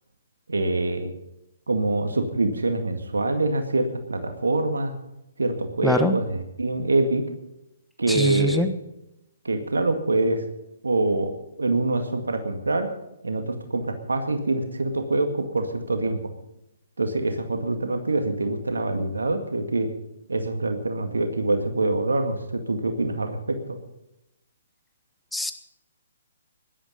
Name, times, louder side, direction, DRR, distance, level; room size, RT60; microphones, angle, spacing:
voice 1, 0.5-1.1 1.7-4.9 5.4-7.2 8.0-8.7 9.4-10.4 10.8-11.3 11.6-12.9 13.2-16.2 17.0-19.9 20.3-23.8, right 2 dB, 85° right, 6 dB, 2.0 m, -25 dB
voice 2, 5.8-6.1 8.1-8.7 25.3-25.5, equal, 5° left, 8 dB, 1.3 m, -23 dB
17.5 x 11.5 x 5.3 m, 0.88 s
hypercardioid pair, 135°, 0 cm